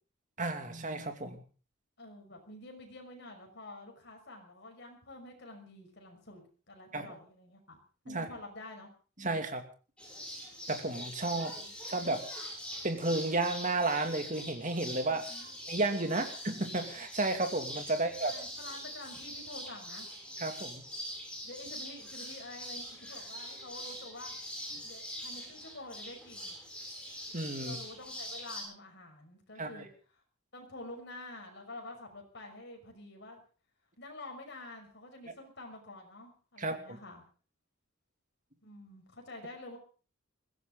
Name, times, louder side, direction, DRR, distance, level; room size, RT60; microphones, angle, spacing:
voice 1, 0.4-1.4 6.9-7.1 8.1-8.3 9.2-9.6 10.7-11.5 11.9-12.2 12.8-15.3 15.7-18.3 20.4-20.8 27.3-27.8 29.6-29.8 36.6-36.8, right 2 dB, 35° right, 6 dB, 2.6 m, -32 dB
voice 2, 2.0-7.8 8.1-8.9 11.4-11.7 15.1-15.5 16.0-16.3 17.9-20.1 21.4-24.3 24.8-26.6 27.6-29.9 30.5-33.4 34.0-37.2 38.6-39.8, left 2 dB, 55° left, 3 dB, 6.0 m, -48 dB
sound 1, 10.0-28.6, equal, 5° left, 6.9 m, -43 dB
22.0 x 16.0 x 4.0 m, 0.38 s
head